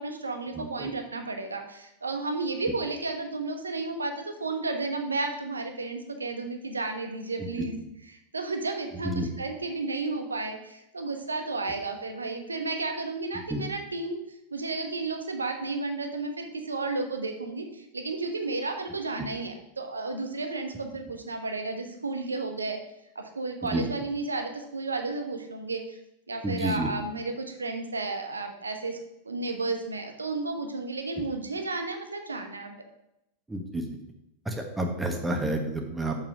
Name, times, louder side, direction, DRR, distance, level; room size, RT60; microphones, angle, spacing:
voice 1, 0.0-7.7 8.3-14.2 14.5-22.8 23.1-26.0 26.3-29.0 29.2-32.7, right 3 dB, 75° right, 5 dB, 1.1 m, -32 dB
voice 2, 0.5-0.9 7.4-7.7 9.0-9.3 13.5-13.6 23.6-23.8 26.4-26.9 33.5-33.8 34.4-36.2, right 1 dB, 10° right, 3 dB, 1.3 m, -30 dB
6.9 x 5.6 x 6.0 m, 0.83 s
figure-of-eight pair, 90°, 0 cm